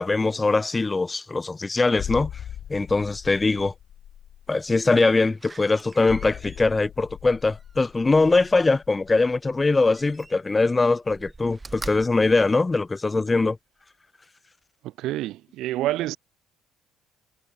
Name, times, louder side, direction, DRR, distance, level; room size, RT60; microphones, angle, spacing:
voice 1, 0.0-2.3 2.7-3.7 4.5-13.6, left 3 dB, 15° left, 0.4 m, -22 dB
sound 1, 2.0-10.4 10.6-10.8, left 10 dB, 45° left, 3.0 m, -40 dB
Slam, 4.7-8.6 9.7-10.6 11.0-13.3 13.8-13.9, right 3 dB, 15° right, 1.7 m, -45 dB
voice 2, 14.8-16.2, right 15 dB, 65° right, 0.3 m, -28 dB
cardioid pair, 155°, 0 cm